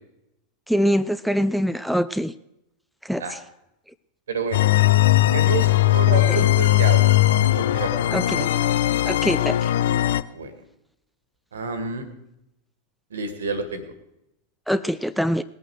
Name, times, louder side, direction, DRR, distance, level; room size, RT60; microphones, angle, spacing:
voice 1, 0.7-2.3 3.0-3.4 6.3-6.4 8.1-8.4 9.1-9.7 14.7-15.4, equal, ahead, 13 dB, 0.4 m, -24 dB
voice 2, 4.3-4.7 5.1-7.1 7.5-8.5 10.3-10.5 11.5-12.1 13.1-13.8, right 4 dB, 65° right, 11 dB, 1.8 m, -29 dB
sound 1, 4.5-10.2, left 15 dB, 60° left, 0.5 m, -19 dB
19.0 x 8.5 x 4.6 m, 0.84 s
figure-of-eight pair, 90°, 0 cm